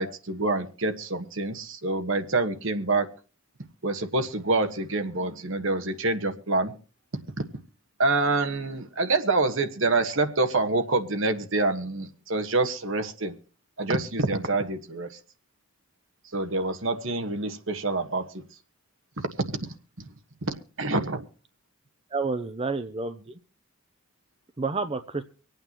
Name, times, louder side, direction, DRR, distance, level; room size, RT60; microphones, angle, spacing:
voice 1, 0.0-3.1 3.8-6.7 8.0-13.3 13.8-15.1 16.3-18.3 19.6-19.7 20.5-21.2, right 2 dB, 60° right, 1.3 m, -26 dB
voice 2, 22.1-23.3 24.6-25.2, right 3 dB, 25° right, 0.6 m, -29 dB
25.0 x 9.0 x 2.9 m
head